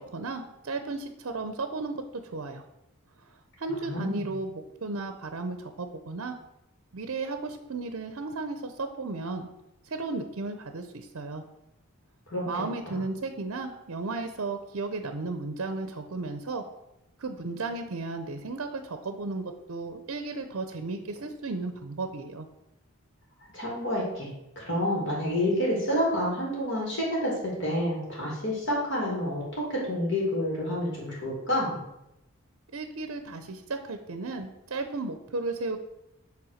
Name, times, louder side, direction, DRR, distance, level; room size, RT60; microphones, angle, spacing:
voice 1, 0.0-2.6 3.6-6.4 6.9-9.5 9.9-11.4 12.5-16.6 17.2-22.5 32.7-35.8, right 3 dB, 70° right, 8 dB, 0.6 m, -34 dB
voice 2, 3.7-4.3 12.3-12.4 23.5-24.3 24.6-27.3 27.6-31.8, left 1 dB, 55° left, -4 dB, 2.4 m, -29 dB
7.5 x 3.5 x 6.4 m, 0.88 s
head